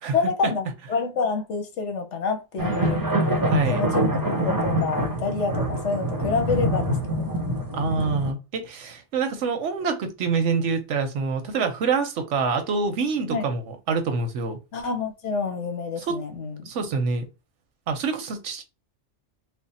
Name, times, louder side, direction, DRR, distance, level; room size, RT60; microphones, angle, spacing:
voice 1, 0.1-3.0 3.7-4.1 4.4-7.3 13.3-13.5 14.7-16.7, left 4 dB, 75° left, 1.2 m, -28 dB
sound 1, 2.6-8.3, right 1 dB, 20° right, 0.7 m, -25 dB
voice 2, 3.4-3.9 7.7-13.6 13.9-14.6 16.1-16.2 16.7-17.3 17.9-18.6, right 4 dB, 85° right, 1.1 m, -26 dB
3.4 x 2.1 x 4.0 m
omnidirectional pair, 1.2 m